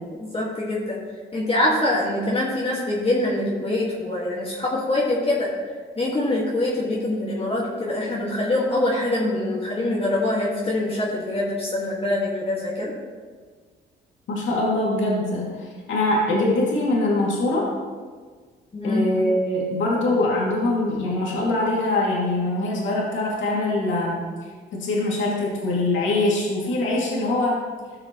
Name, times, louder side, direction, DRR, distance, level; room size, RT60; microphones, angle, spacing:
voice 1, 0.1-1.0 1.3-5.5 6.0-12.9 18.7-19.0, left 1 dB, 30° left, -5 dB, 1.7 m, -24 dB
voice 2, 14.3-17.7 18.8-24.2 24.7-27.6, left 2 dB, 75° left, -4 dB, 2.3 m, -23 dB
15.0 x 6.0 x 3.0 m, 1.5 s
cardioid pair, 90°, 20 cm